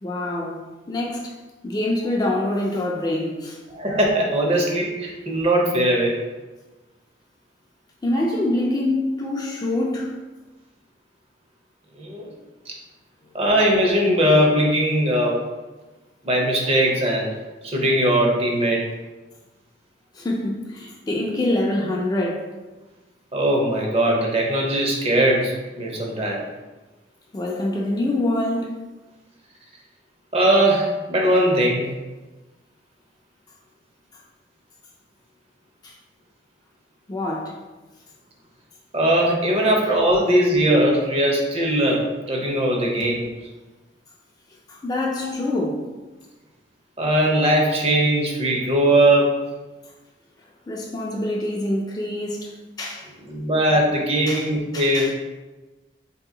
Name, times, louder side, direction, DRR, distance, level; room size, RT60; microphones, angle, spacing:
voice 1, 0.0-1.3 1.6-3.6 8.0-10.2 20.1-22.5 27.3-28.8 35.8-35.9 37.1-37.6 44.7-45.9 50.7-52.5 52.8-53.1 54.3-54.5 54.7-55.1, left 1 dB, 20° left, 0.3 m, -25 dB
voice 2, 3.7-6.2 12.0-12.3 12.7-12.8 13.3-15.4 16.2-17.3 17.6-18.9 23.3-26.4 30.3-31.9 38.9-42.0 42.3-43.3 45.2-45.3 47.0-49.3 53.3-55.1, right 1 dB, 35° right, 0.6 m, -20 dB
2.8 x 2.7 x 3.7 m
head